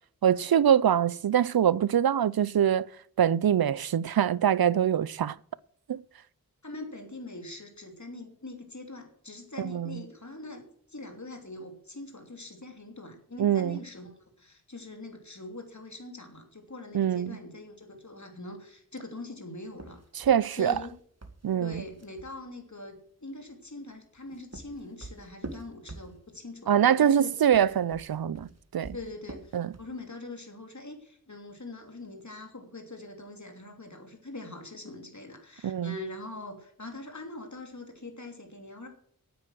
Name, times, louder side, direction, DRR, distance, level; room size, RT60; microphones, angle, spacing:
voice 1, 0.2-2.9 3.2-5.4 5.9-6.0 9.6-10.0 13.4-13.8 16.9-17.4 20.2-20.8 21.4-21.8 26.7-28.5 28.7-28.9 29.5-29.7 35.6-35.9, right 9 dB, 90° right, 0.5 m, -24 dB
voice 2, 6.6-10.6 10.9-14.1 14.4-20.0 20.5-20.9 21.6-27.3 28.9-38.9, left 2 dB, 55° left, 3.0 m, -43 dB
sound 1, 19.7-22.3 24.0-26.5 27.4-30.0, right 2 dB, 45° right, 1.8 m, -45 dB
9.3 x 9.1 x 7.7 m
wide cardioid pair, 40°, 35 cm